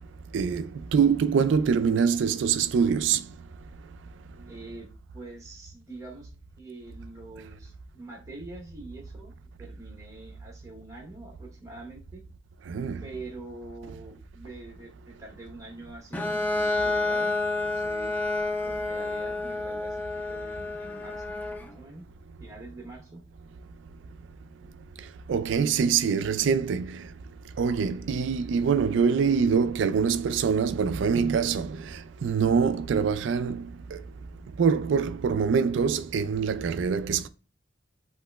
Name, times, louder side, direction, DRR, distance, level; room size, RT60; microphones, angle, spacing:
voice 1, 0.3-0.6 0.9-3.2 12.7-13.0 25.3-26.9 27.6-31.8 32.2-33.6 34.6-37.3, right 6 dB, 70° right, 0.3 m, -24 dB
voice 2, 4.5-4.9 5.1-6.3 6.6-12.2 13.0-17.3 17.6-18.2 18.6-22.0 22.4-23.2, right 2 dB, 15° right, 0.9 m, -45 dB
Bowed string instrument, 16.1-21.7, left 2 dB, 10° left, 0.4 m, -29 dB
7.7 x 3.0 x 2.2 m
head